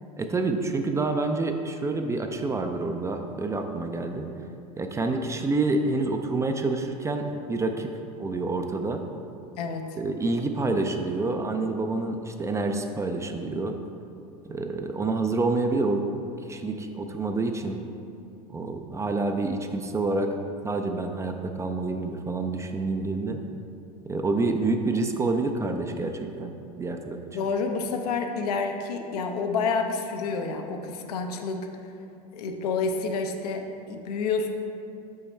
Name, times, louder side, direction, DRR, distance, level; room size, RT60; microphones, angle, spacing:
voice 1, 0.2-4.3 4.8-7.9 8.2-9.0 9.9-13.7 14.5-16.0 16.5-17.8 18.5-20.3 20.6-23.4 24.0-26.5 26.8-27.2, right 3 dB, 15° right, 5 dB, 0.4 m, -27 dB
voice 2, 9.6-9.9 27.3-31.7 32.3-34.5, left 4 dB, 75° left, 4 dB, 0.7 m, -29 dB
6.0 x 5.4 x 3.3 m, 2.6 s
hypercardioid pair, 90°, 20 cm